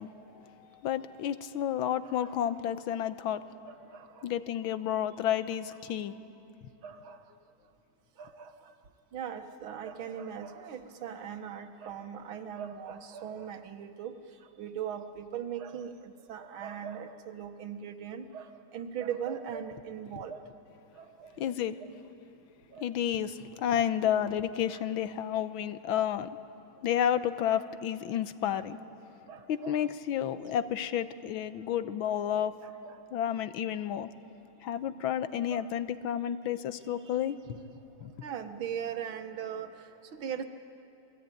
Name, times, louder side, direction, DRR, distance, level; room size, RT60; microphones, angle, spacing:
voice 1, 0.0-3.4 4.2-6.2 21.4-21.8 22.8-26.3 26.8-28.8 29.0-29.1 29.5-32.6 33.1-34.1 34.6-37.6 38.0-38.1, left 10 dB, 85° left, 12 dB, 1.7 m, -31 dB
voice 2, 3.7-4.3 6.8-7.2 8.2-8.8 9.1-20.4 20.9-21.4 21.8-21.9 22.7-22.9 23.7-23.9 24.7-24.8 27.5-27.6 28.5-28.7 29.3-29.8 32.6-33.0 35.5-35.6 37.2-37.3 38.0-40.4, right 8 dB, 85° right, 8 dB, 2.0 m, -40 dB
28.0 x 20.5 x 9.2 m, 2.8 s
omnidirectional pair, 2.2 m